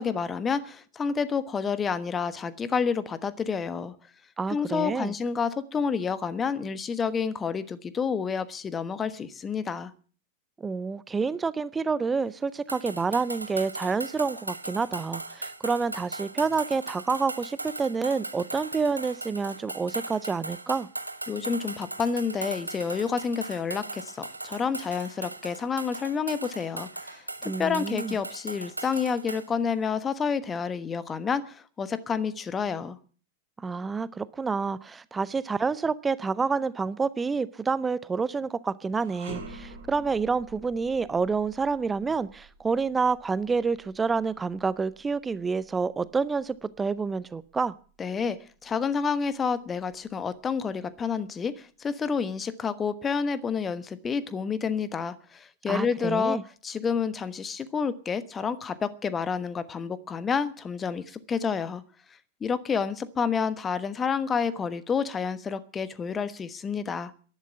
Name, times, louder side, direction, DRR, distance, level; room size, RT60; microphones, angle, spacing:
voice 1, 0.0-3.9 4.5-9.9 21.3-33.0 48.0-61.8 62.4-67.1, left 6 dB, 20° left, 14 dB, 1.2 m, -29 dB
voice 2, 4.4-5.1 10.6-20.9 27.4-28.1 33.6-47.7 55.7-56.4, right 4 dB, 15° right, 18 dB, 0.6 m, -28 dB
sound 1, 12.7-29.5, right 2 dB, 85° right, 1.1 m, -38 dB
sound 2, 38.9-48.2 48.6-48.8 49.7-50.5, right 3 dB, 60° right, 6.5 m, -48 dB
11.5 x 11.0 x 9.3 m, 0.42 s
figure-of-eight pair, 90°, 0 cm